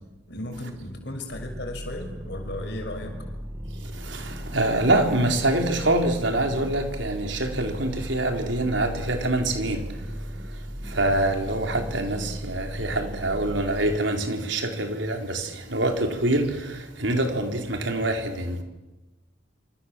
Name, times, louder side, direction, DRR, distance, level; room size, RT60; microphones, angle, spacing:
voice 1, 0.3-3.1, left 1 dB, 55° left, 6.2 m, -35 dB
sound 1, 1.3-14.0, equal, 15° right, 1.9 m, -37 dB
voice 2, 4.0-9.8 10.9-18.6, right 1 dB, 65° right, 4.2 m, -25 dB
28.0 x 26.5 x 7.6 m
head